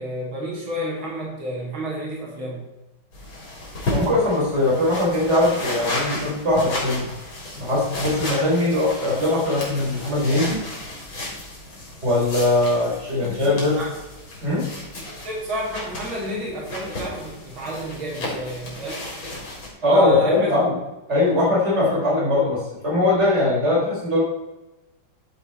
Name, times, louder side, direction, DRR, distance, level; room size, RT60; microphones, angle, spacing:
voice 1, 0.0-2.6 13.2-13.9 15.1-19.1 19.8-20.5, right 1 dB, 85° right, -4 dB, 3.6 m, -31 dB
sound 1, 3.1-19.7, left 1 dB, 80° left, 4.3 m, -33 dB
voice 2, 3.9-7.1 7.6-10.6 12.0-13.8 14.4-14.7 19.8-20.7 21.1-24.2, left 2 dB, 35° right, -5 dB, 4.6 m, -20 dB
12.0 x 7.6 x 4.4 m, 1.0 s
omnidirectional pair, 2.2 m